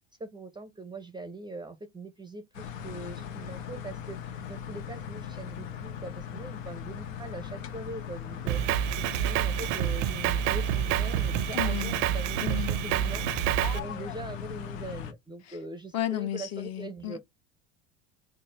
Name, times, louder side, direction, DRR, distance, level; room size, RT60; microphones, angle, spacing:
voice 1, 0.2-17.2, right 2 dB, 10° right, 0.5 m, -42 dB
sound 1, 2.5-15.1, left 8 dB, 85° left, 0.7 m, -39 dB
Drum kit, 8.5-13.8, right 12 dB, 65° right, 0.5 m, -28 dB
voice 2, 11.5-11.9 12.4-12.7 15.9-17.2, left 12 dB, 45° left, 0.7 m, -33 dB
3.4 x 2.0 x 4.0 m
hypercardioid pair, 90°, 38 cm